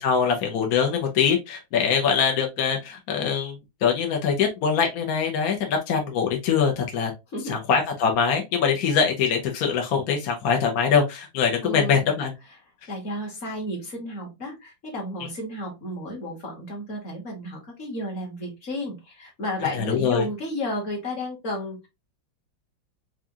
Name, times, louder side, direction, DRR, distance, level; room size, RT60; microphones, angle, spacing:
voice 1, 0.0-3.6 3.8-7.1 7.5-12.3 19.7-20.2, left 6 dB, 60° left, 1.1 m, -23 dB
voice 2, 11.6-12.1 12.9-21.9, left 1 dB, 40° left, 1.5 m, -32 dB
4.8 x 2.4 x 2.6 m
omnidirectional pair, 2.2 m